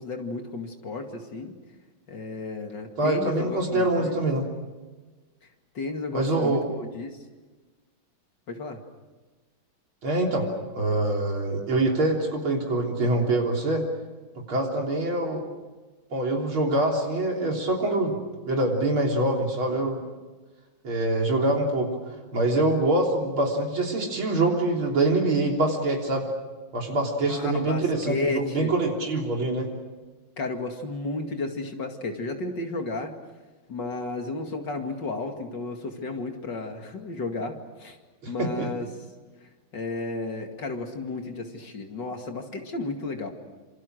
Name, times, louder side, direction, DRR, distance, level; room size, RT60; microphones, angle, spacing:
voice 1, 0.0-1.6 2.1-4.2 5.7-7.2 8.5-8.8 27.3-28.7 30.4-33.1 33.7-38.0 38.3-38.9 39.4-43.3, left 3 dB, 60° left, 4 dB, 2.9 m, -33 dB
voice 2, 3.0-4.5 6.1-6.6 10.0-10.5 10.7-13.8 14.5-15.4 16.1-18.2 18.5-20.0 20.8-21.9 22.3-26.3 26.7-29.7 38.2-38.7, right 2 dB, 85° right, 0 dB, 4.4 m, -24 dB
27.5 x 27.0 x 6.4 m, 1.2 s
omnidirectional pair, 2.2 m